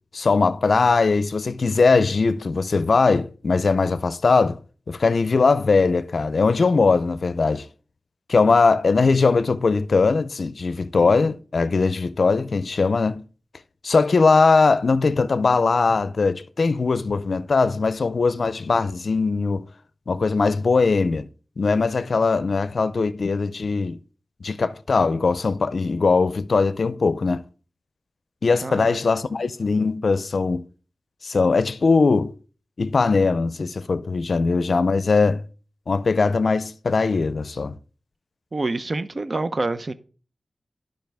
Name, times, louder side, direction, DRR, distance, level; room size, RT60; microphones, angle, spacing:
voice 1, 0.1-4.6 4.9-7.7 8.3-13.2 13.8-19.7 20.1-21.3 21.6-24.0 24.4-27.4 28.4-30.7 31.2-32.3 32.8-35.4 35.9-37.8, left 4 dB, 70° left, 0.5 m, -20 dB
voice 2, 28.6-29.0 38.5-39.9, right 2 dB, 45° right, 0.7 m, -27 dB
11.5 x 5.3 x 3.4 m
wide cardioid pair, 75°, 0 cm